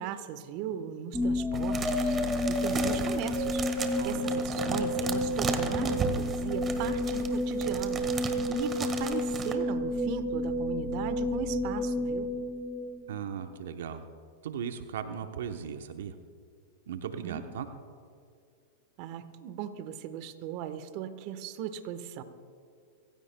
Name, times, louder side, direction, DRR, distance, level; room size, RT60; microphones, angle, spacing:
voice 1, 0.0-2.2 2.5-8.1 8.5-12.3 17.2-17.4 19.0-22.2, right 9 dB, 55° right, 11 dB, 1.1 m, -38 dB
sound 1, 1.1-13.2, left 1 dB, 5° left, 2.2 m, -30 dB
sound 2, 1.5-9.5, right 5 dB, 25° right, 1.5 m, -36 dB
voice 2, 4.0-4.3 13.1-14.0 14.4-16.1 16.9-17.7, right 8 dB, 75° right, 7 dB, 0.9 m, -37 dB
25.5 x 16.0 x 2.2 m, 2.3 s
hypercardioid pair, 115°, 0 cm